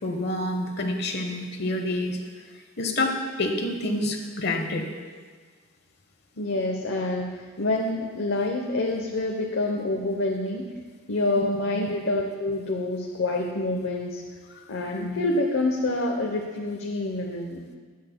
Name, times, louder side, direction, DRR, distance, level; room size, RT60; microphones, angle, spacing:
voice 1, 0.0-2.2 2.8-4.8 11.3-11.4 11.7-12.0 14.9-15.2, left 1 dB, 55° left, 4 dB, 1.1 m, -28 dB
voice 2, 6.4-10.7 11.1-14.2 14.7-17.6, left 2 dB, 75° left, 0 dB, 0.8 m, -27 dB
19.0 x 7.5 x 2.2 m, 1.5 s
head